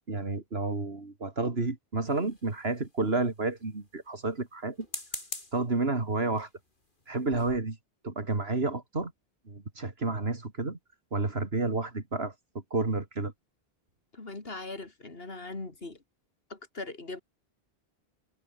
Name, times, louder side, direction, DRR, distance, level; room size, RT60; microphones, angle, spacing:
voice 1, 0.0-4.8 5.5-6.5 7.1-7.8 8.0-9.1 9.5-10.8 11.1-12.3 12.7-13.3, right 3 dB, 80° right, 3.1 m, -30 dB
sound 1, 2.1-2.9 4.7-5.7 6.4-6.6 7.0-7.1 7.3-7.6, left 2 dB, 55° left, 4.7 m, -41 dB
voice 2, 14.1-16.0 16.5-17.2, left 3 dB, 70° left, 3.5 m, -40 dB
omnidirectional pair, 1.0 m